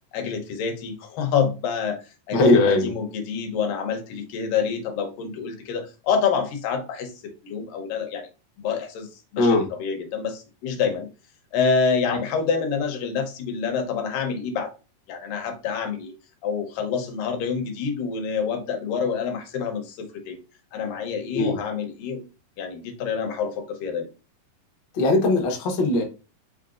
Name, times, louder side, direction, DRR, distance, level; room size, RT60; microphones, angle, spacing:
voice 1, 0.1-2.0 2.3-8.3 8.6-9.1 9.3-9.5 9.8-11.1 11.5-14.7 15.1-16.1 16.4-20.4 20.7-22.2 22.6-24.1, left 6 dB, 80° left, 5 dB, 2.5 m, -27 dB
voice 2, 2.3-2.9 9.4-9.7 21.3-21.6 24.9-26.0, left 2 dB, 65° left, 2 dB, 1.1 m, -19 dB
5.6 x 3.8 x 2.4 m, 0.31 s
omnidirectional pair, 3.8 m